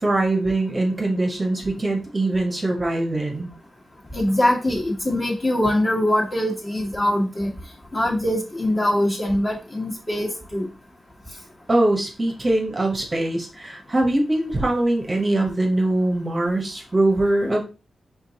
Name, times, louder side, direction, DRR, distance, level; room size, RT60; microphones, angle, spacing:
voice 1, 0.0-3.5 11.7-17.6, right 2 dB, 25° right, 1 dB, 0.9 m, -22 dB
voice 2, 4.1-7.5 7.9-10.7, left 1 dB, 30° left, -1 dB, 1.4 m, -22 dB
4.5 x 3.6 x 2.7 m, 0.31 s
wide cardioid pair, 120°, 0 cm